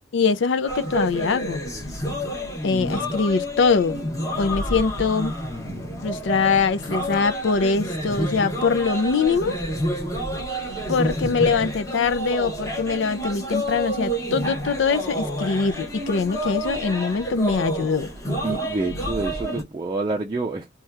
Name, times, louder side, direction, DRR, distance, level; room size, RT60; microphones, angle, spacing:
voice 1, 0.1-1.6 2.6-4.0 4.4-5.3 6.0-9.6 10.9-18.1, left 5 dB, 70° left, 0.4 m, -23 dB
sound 1, 0.7-19.6, equal, 15° left, 0.9 m, -29 dB
voice 2, 18.4-20.7, right 2 dB, 25° right, 0.5 m, -27 dB
2.7 x 2.3 x 3.3 m
head